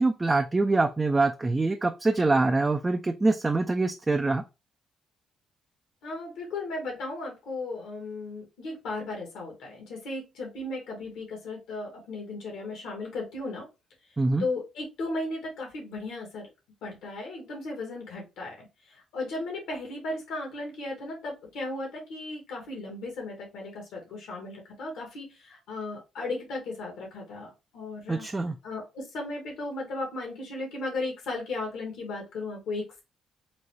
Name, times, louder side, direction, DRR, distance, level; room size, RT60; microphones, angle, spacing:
voice 1, 0.0-4.4 14.2-14.5 28.1-28.5, right 3 dB, 20° right, 5 dB, 0.3 m, -24 dB
voice 2, 6.0-13.6 14.4-16.5 16.8-28.2 28.6-33.0, left 2 dB, 85° left, 0 dB, 1.7 m, -36 dB
4.0 x 2.2 x 3.0 m, 0.26 s
cardioid pair, 90°, 0 cm